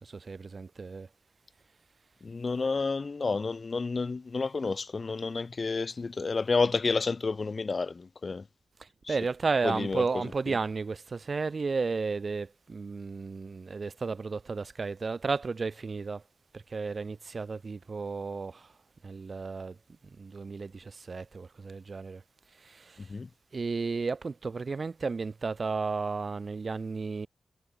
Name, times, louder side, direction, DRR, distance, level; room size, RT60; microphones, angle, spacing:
voice 1, 0.0-1.1 8.8-16.2 16.5-18.7 19.0-19.8 20.0-22.2 22.6-23.1 23.5-27.3, right 4 dB, 45° right, 0.9 m, -33 dB
voice 2, 2.2-8.4 9.0-9.1 9.6-10.0 10.5-10.6 23.0-23.3, left 4 dB, 40° left, 0.5 m, -30 dB
wide cardioid pair, 140°, 0 cm